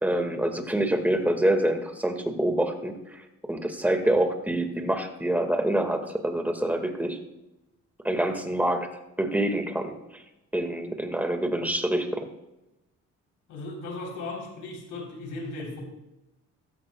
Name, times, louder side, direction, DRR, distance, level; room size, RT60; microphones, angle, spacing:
voice 1, 0.0-7.2 8.0-8.9 9.2-10.2 10.5-12.3, right 1 dB, 5° right, 5 dB, 1.8 m, -26 dB
voice 2, 13.5-15.8, left 2 dB, 80° left, 0 dB, 3.6 m, -36 dB
16.5 x 13.0 x 2.3 m, 0.96 s
cardioid pair, 90°, 30 cm